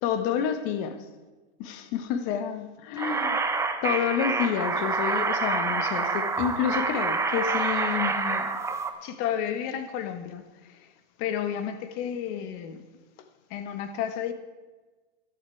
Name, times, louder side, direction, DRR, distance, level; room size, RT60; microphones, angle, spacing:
voice 1, 0.0-1.1 1.6-3.5 3.8-8.5 9.0-10.8 11.2-12.8 13.5-14.3, left 9 dB, 40° left, 1.5 m, -30 dB
sound 1, 3.0-8.9, right 4 dB, 10° right, 0.9 m, -27 dB
16.5 x 12.0 x 4.7 m
hypercardioid pair, 135°, 33 cm